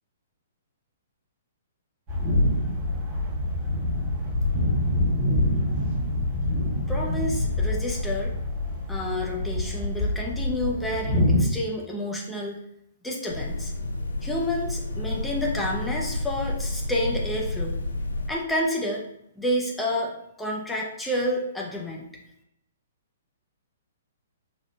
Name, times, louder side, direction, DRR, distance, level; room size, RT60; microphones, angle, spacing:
sound 1, 2.1-11.5, left 1 dB, 30° right, 0.7 m, -25 dB
voice 1, 6.9-8.3 8.9-12.6 13.0-13.7 14.2-17.9 18.3-19.0 19.4-22.1, left 1 dB, 5° left, -3 dB, 0.5 m, -29 dB
sound 2, 13.3-18.3, left 2 dB, 65° left, 0.4 m, -30 dB
4.3 x 2.1 x 2.3 m, 0.82 s
figure-of-eight pair, 115°, 0 cm